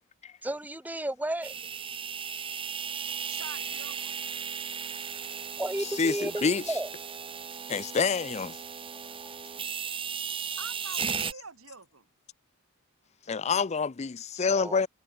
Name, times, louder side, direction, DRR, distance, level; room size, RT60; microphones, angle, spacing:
voice 1, 0.4-1.5 5.6-6.9 8.9-9.4 14.4-14.8, right 1 dB, 10° right, 1.0 m, -34 dB
sound 1, 1.4-11.3, right 7 dB, 25° right, 1.3 m, -36 dB
voice 2, 3.3-4.2 10.6-12.1, right 5 dB, 75° right, 2.8 m, -45 dB
voice 3, 6.0-6.6 7.7-8.6 10.5-10.6 13.3-14.9, left 5 dB, 30° left, 0.5 m, -27 dB
head